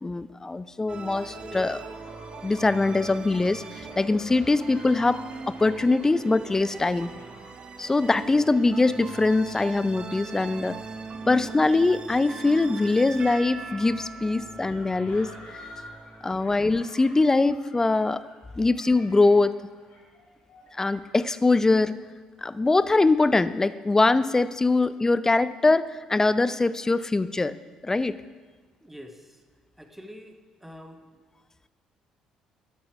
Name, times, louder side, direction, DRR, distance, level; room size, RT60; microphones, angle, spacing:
voice 1, 0.0-1.8 2.4-7.1 7.8-10.8 11.3-15.3 16.2-18.2 18.6-19.6 20.7-22.0 22.4-27.6 27.8-28.2, left 3 dB, 20° left, 16 dB, 0.5 m, -22 dB
sound 1, 0.9-16.7, right 4 dB, 35° right, 0.8 m, -41 dB
sound 2, 1.2-21.1, left 2 dB, 55° left, 3.9 m, -50 dB
voice 2, 28.8-29.4 29.8-31.0, equal, 5° right, 5 dB, 1.5 m, -45 dB
13.0 x 10.5 x 4.8 m, 1.4 s
figure-of-eight pair, 50°, 3 cm